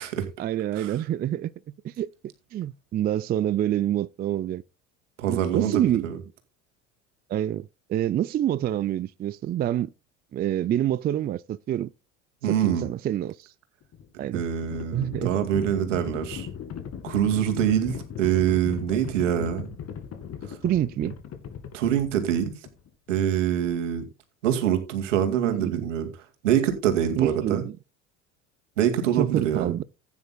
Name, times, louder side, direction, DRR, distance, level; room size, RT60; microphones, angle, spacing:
voice 1, 0.4-1.5 1.8-2.1 2.5-4.6 5.3-6.0 7.3-9.9 10.3-11.9 12.5-13.5 14.2-14.4 14.9-15.3 19.4-19.5 20.6-21.1 25.4-25.9 27.2-27.8 29.2-29.8, right 11 dB, 25° right, 0.4 m, -27 dB
voice 2, 5.2-6.2 12.4-12.9 14.3-16.5 17.0-19.7 21.7-22.5 23.1-24.0 24.4-26.1 26.4-27.6 28.8-29.7, right 10 dB, 80° right, 2.2 m, -25 dB
Livestock farm animals working animals, 13.8-22.9, left 8 dB, 45° left, 2.1 m, -38 dB
15.0 x 9.5 x 2.3 m
hypercardioid pair, 70°, 37 cm